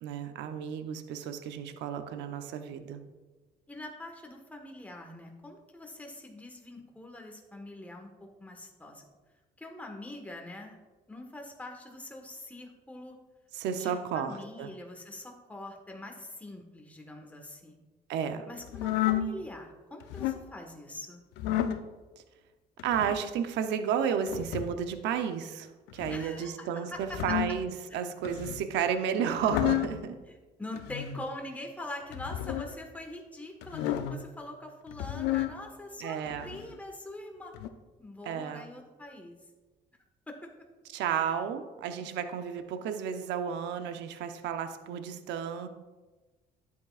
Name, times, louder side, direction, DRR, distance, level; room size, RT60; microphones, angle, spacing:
voice 1, 0.0-3.0 13.5-14.3 14.6-14.7 18.1-18.5 22.8-30.2 36.0-36.5 38.3-38.7 40.9-45.7, right 8 dB, 80° right, 8 dB, 0.7 m, -32 dB
voice 2, 3.7-8.1 8.4-9.1 9.6-10.8 11.1-13.1 13.8-17.8 18.5-21.2 26.1-27.4 27.9-28.0 30.2-30.3 30.6-37.5 38.0-39.4 40.3-40.5 41.0-41.4, left 1 dB, 10° left, 2 dB, 1.5 m, -44 dB
sound 1, 18.7-19.3 20.0-20.4 21.4-21.8 22.8-23.2 24.3-24.8 25.9-26.3 27.0-27.6 28.2-28.7 29.3-30.0 30.8-31.2 32.1-32.7 33.6-34.2 34.9-35.5 36.3-36.8 37.5-37.7, left 11 dB, 85° left, 0.6 m, -31 dB
11.5 x 8.3 x 2.5 m, 1.3 s
supercardioid pair, 75°, 18 cm